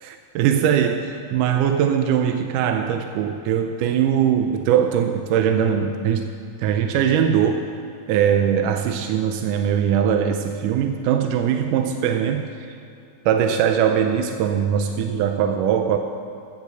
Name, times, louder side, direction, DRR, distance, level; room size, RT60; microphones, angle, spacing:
voice 1, 0.0-6.3 6.6-7.6 8.1-12.5 13.3-16.0, right 8 dB, 75° right, 6 dB, 2.1 m, -21 dB
16.0 x 8.3 x 6.8 m, 2.8 s
omnidirectional pair, 4.0 m